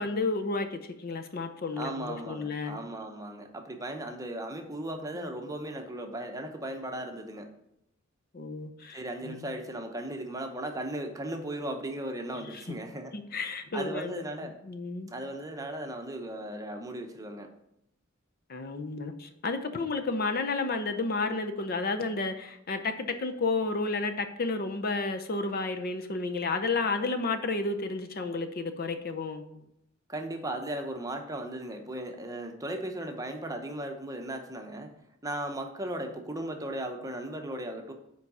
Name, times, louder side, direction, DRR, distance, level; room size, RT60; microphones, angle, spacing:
voice 1, 0.0-2.8 8.3-9.5 12.3-12.7 13.1-15.1 18.5-29.7, left 3 dB, 45° left, 8 dB, 0.6 m, -32 dB
voice 2, 1.8-7.5 8.9-13.1 13.7-14.5 15.1-17.5 30.1-34.9 35.2-37.9, right 1 dB, 15° right, 4 dB, 0.8 m, -37 dB
7.3 x 4.6 x 5.4 m, 0.80 s
head